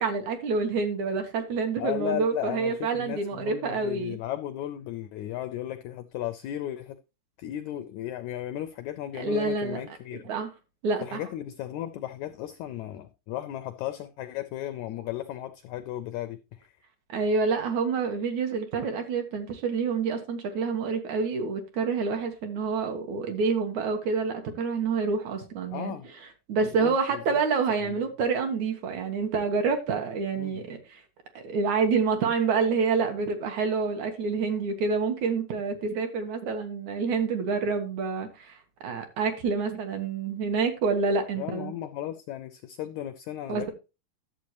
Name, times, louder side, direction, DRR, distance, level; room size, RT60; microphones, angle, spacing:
voice 1, 0.0-4.2 9.2-9.8 10.1-10.5 10.8-11.2 17.1-26.0 26.5-30.8 31.4-41.7 43.5-43.7, right 5 dB, 65° right, 2.4 m, -27 dB
voice 2, 1.8-7.0 7.4-10.2 11.0-16.7 25.7-26.1 26.6-27.4 27.8-27.9 30.4-30.6 41.4-43.7, left 12 dB, 85° left, 1.6 m, -35 dB
11.5 x 7.6 x 3.0 m
omnidirectional pair, 4.0 m